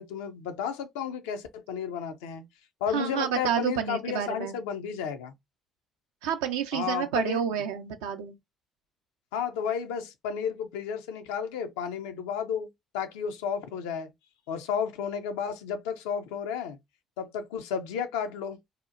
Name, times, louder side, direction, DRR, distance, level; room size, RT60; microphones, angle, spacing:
voice 1, 0.0-2.5 2.8-5.3 6.7-7.4 9.3-12.7 12.9-14.1 14.5-16.8 17.2-18.6, left 7 dB, 75° left, 0.4 m, -32 dB
voice 2, 2.9-4.6 6.2-8.4, right 8 dB, 75° right, 0.4 m, -29 dB
2.7 x 2.1 x 2.4 m
figure-of-eight pair, 45°, 0 cm